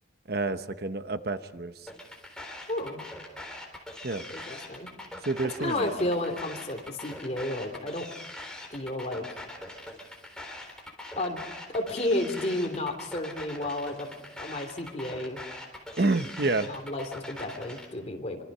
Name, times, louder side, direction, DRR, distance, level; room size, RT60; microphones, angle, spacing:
voice 1, 0.3-1.9 4.0-4.2 5.3-5.9 16.0-16.7, right 2 dB, 55° right, 10 dB, 0.9 m, -29 dB
sound 1, 1.9-17.9, left 1 dB, 5° left, 3.7 m, -42 dB
voice 2, 2.7-3.0 4.3-4.9 5.6-8.1 8.7-9.3 11.2-11.4 11.7-14.1 14.4-15.4 16.7-18.4, left 1 dB, 35° left, 4 dB, 3.2 m, -32 dB
26.0 x 25.0 x 5.6 m, 1.2 s
head